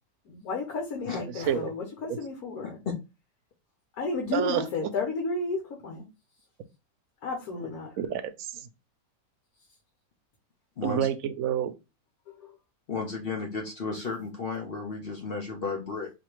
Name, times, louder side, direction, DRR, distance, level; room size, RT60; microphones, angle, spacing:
voice 1, 0.2-2.8 3.9-6.1 7.2-8.0 12.3-12.6, left 3 dB, 80° left, 1.4 m, -32 dB
voice 2, 8.0-8.6 10.8-11.7, right 9 dB, 75° right, 1.0 m, -28 dB
voice 3, 10.8-11.1 12.9-16.1, left 4 dB, 50° left, 0.8 m, -33 dB
4.3 x 2.7 x 3.0 m
omnidirectional pair, 1.5 m